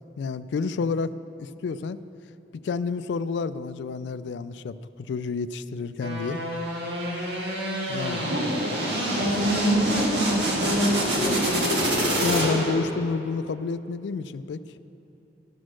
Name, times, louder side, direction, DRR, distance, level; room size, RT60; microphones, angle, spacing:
voice 1, 0.2-1.1 1.4-2.0 2.6-4.8 5.1-6.4 7.9-8.3 12.2-14.6, left 4 dB, 80° left, 14 dB, 0.3 m, -29 dB
sound 1, 6.0-12.9, right 1 dB, 75° right, 2.0 m, -27 dB
voice 2, 9.0-12.0, equal, 60° right, -5 dB, 2.4 m, -26 dB
12.5 x 6.2 x 6.2 m, 2.9 s
head